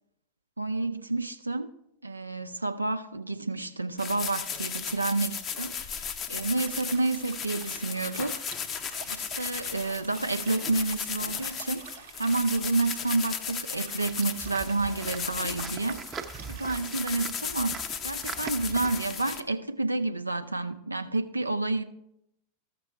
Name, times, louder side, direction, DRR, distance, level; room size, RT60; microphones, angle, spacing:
voice 1, 0.6-1.7 2.0-8.3 9.1-16.0 16.5-21.8, right 3 dB, 85° right, 0.6 m, -30 dB
sound 1, 4.0-19.4, left 7 dB, 30° left, 0.7 m, -36 dB
Liquid, 6.3-16.9, right 9 dB, 55° right, 0.9 m, -48 dB
sound 2, 14.1-19.3, right 5 dB, 20° right, 0.7 m, -42 dB
13.5 x 6.8 x 4.5 m
figure-of-eight pair, 90°, 0 cm